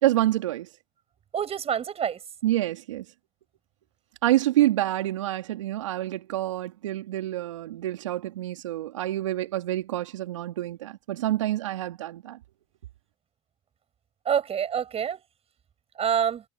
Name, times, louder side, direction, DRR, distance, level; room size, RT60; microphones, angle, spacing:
voice 1, 0.0-0.7 2.4-3.1 4.2-12.4, right 14 dB, 80° right, 2.3 m, -27 dB
voice 2, 1.3-2.2 14.3-15.2 16.0-16.4, right 8 dB, 40° right, 7.8 m, -26 dB
hypercardioid pair, 70°, 16 cm